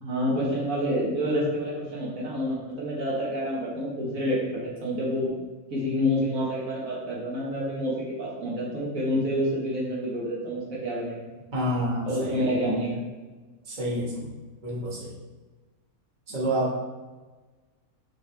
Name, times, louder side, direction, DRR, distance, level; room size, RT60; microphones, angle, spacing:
voice 1, 0.0-5.3 5.7-11.2 12.0-13.0, equal, 70° right, -5 dB, 1.9 m, -28 dB
voice 2, 11.5-12.4 13.7-14.4 14.6-15.1 16.3-16.9, equal, 35° right, -6 dB, 1.7 m, -28 dB
6.3 x 5.2 x 3.4 m, 1.3 s
omnidirectional pair, 1.5 m